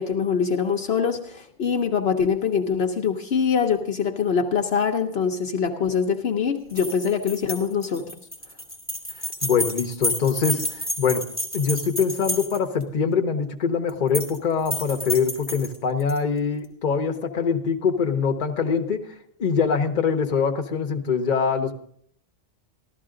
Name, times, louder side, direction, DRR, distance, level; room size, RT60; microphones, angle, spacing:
voice 1, 0.0-8.1, left 6 dB, 65° left, 3 dB, 1.0 m, -24 dB
sound 1, 6.7-12.8 13.9-14.4 14.7-16.2, equal, 5° right, 2.2 m, -30 dB
voice 2, 9.4-11.2 11.5-19.0 19.4-21.8, left 6 dB, 45° left, 5 dB, 1.0 m, -23 dB
14.5 x 12.5 x 3.8 m, 0.66 s
omnidirectional pair, 1.2 m